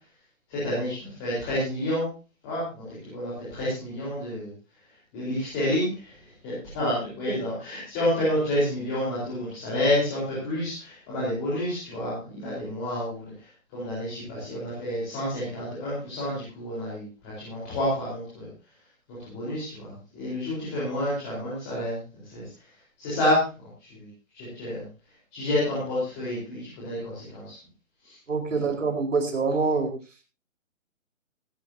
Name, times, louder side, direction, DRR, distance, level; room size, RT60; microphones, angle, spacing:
voice 1, 0.5-2.1 2.4-4.5 5.1-6.1 6.4-13.5 13.7-18.5 19.1-22.5 23.0-24.1 24.3-24.8 25.3-27.6 28.0-28.1, left 1 dB, 10° left, -8 dB, 4.3 m, -29 dB
voice 2, 28.3-29.9, right 4 dB, 65° right, 4 dB, 4.7 m, -25 dB
16.5 x 16.0 x 2.8 m, 0.31 s
hypercardioid pair, 180°, 40 cm